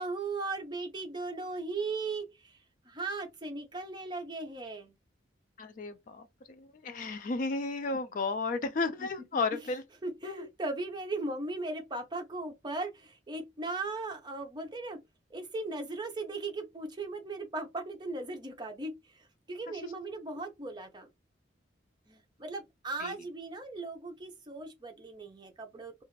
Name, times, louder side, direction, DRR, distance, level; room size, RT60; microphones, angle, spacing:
voice 1, 0.0-2.6 2.8-4.9 8.6-8.7 9.0-9.1 10.0-15.0 15.3-21.1 22.1-26.0, right 3 dB, 25° right, 0.6 m, -38 dB
voice 2, 5.6-9.8 10.2-10.5 23.0-23.1, left 3 dB, 45° left, 0.3 m, -33 dB
2.5 x 2.4 x 3.1 m
head